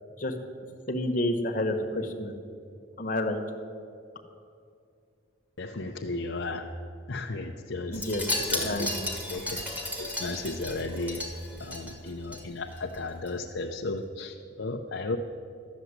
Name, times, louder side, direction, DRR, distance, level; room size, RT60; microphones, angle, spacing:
voice 1, 0.9-2.3 3.0-3.4 7.9-8.3 8.5-9.1, left 1 dB, 40° left, 3 dB, 1.2 m, -29 dB
voice 2, 5.6-6.7 7.1-8.0 8.5-8.9 9.3-9.6 10.0-11.3 11.6-15.2, left 2 dB, 70° left, 1 dB, 0.7 m, -34 dB
Wind chime, 7.9-12.4 12.7-13.0 13.3-13.4, left 1 dB, 5° right, 1.6 m, -34 dB
12.5 x 7.2 x 9.7 m, 2.4 s
head